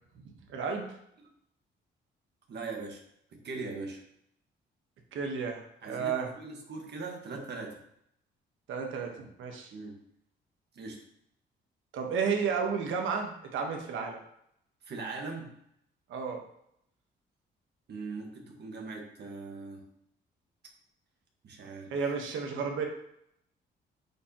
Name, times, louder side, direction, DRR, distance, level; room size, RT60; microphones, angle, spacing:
voice 1, 0.5-0.9 5.1-6.3 8.7-9.7 11.9-14.2 16.1-16.4 21.9-22.9, right 5 dB, 75° right, 2 dB, 1.3 m, -32 dB
voice 2, 2.5-3.0 3.3-4.0 5.8-7.8 9.7-10.0 10.7-11.0 14.8-15.5 17.9-19.9 21.4-21.9, right 3 dB, 60° right, 1 dB, 1.7 m, -40 dB
8.1 x 4.6 x 3.0 m, 0.73 s
cardioid pair, 90°, 20 cm